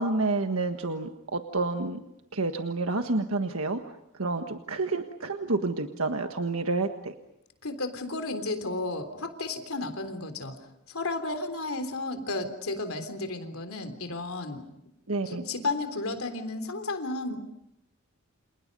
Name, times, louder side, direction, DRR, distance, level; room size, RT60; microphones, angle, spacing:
voice 1, 0.0-2.0 2.3-3.8 4.1-7.1 15.1-15.4, right 3 dB, 80° right, 6 dB, 1.5 m, -29 dB
voice 2, 7.6-10.6 10.9-14.6 15.2-17.4, left 2 dB, 80° left, 8 dB, 3.5 m, -33 dB
29.5 x 28.0 x 5.4 m, 0.81 s
head